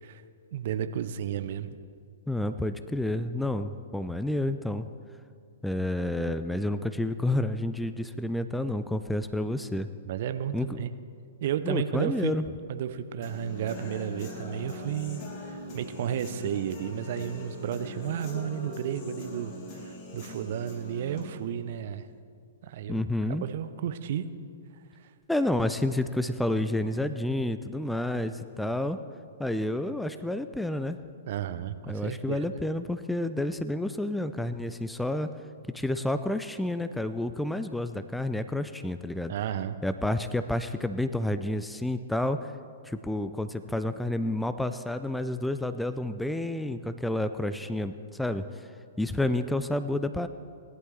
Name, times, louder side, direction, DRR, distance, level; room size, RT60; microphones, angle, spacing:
voice 1, 0.5-1.8 10.1-11.0 11.4-12.3 12.7-22.1 22.6-23.0 23.4-24.3 31.3-32.6 39.3-39.8, right 9 dB, 50° right, 11 dB, 0.6 m, -32 dB
voice 2, 2.3-4.9 5.6-9.9 10.5-10.8 11.6-12.4 22.9-23.5 25.3-29.0 29.4-31.0 31.9-35.3 35.7-39.3 39.8-42.5 42.8-48.7 49.0-50.3, left 1 dB, 5° left, 10 dB, 0.4 m, -30 dB
Human voice / Guitar, 13.2-21.2, left 2 dB, 35° left, 3.4 m, -41 dB
18.0 x 11.0 x 3.3 m, 2.3 s
figure-of-eight pair, 110°, 0 cm